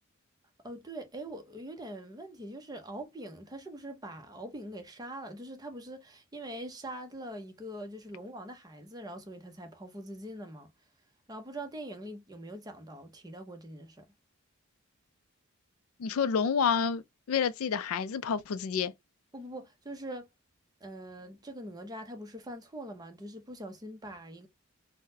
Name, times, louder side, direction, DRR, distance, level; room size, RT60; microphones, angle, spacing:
voice 1, 0.6-10.7 11.3-14.1 19.3-20.3 20.8-24.5, right 1 dB, 20° right, 0.6 m, -43 dB
voice 2, 16.0-17.0 17.3-18.9, left 6 dB, 80° left, 0.4 m, -28 dB
3.8 x 2.1 x 2.6 m
head